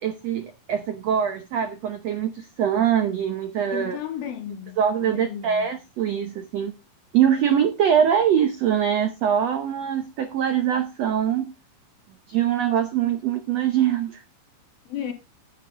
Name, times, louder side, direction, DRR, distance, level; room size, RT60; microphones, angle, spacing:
voice 1, 0.0-4.0 4.8-6.7 7.1-11.5 12.3-14.2, right 9 dB, 80° right, 1.4 m, -23 dB
voice 2, 3.7-5.7 14.9-15.1, left 9 dB, 75° left, 3.3 m, -34 dB
11.0 x 9.4 x 3.7 m
omnidirectional pair, 4.3 m